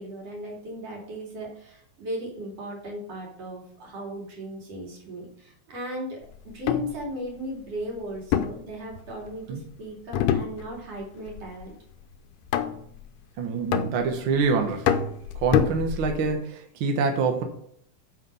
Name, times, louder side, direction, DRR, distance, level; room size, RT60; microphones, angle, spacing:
voice 1, 0.0-6.2 6.5-11.7, right 1 dB, 50° right, -2 dB, 3.7 m, -37 dB
sound 1, 6.5-7.0 8.3-9.4 10.1-11.0 11.3-11.7 12.5-13.0 13.7-14.4 14.9-16.3, left 9 dB, 85° left, 2.2 m, -26 dB
voice 2, 13.4-15.0 15.4-17.4, right 5 dB, 70° right, 5 dB, 1.2 m, -26 dB
7.7 x 5.7 x 5.6 m, 0.67 s
omnidirectional pair, 3.7 m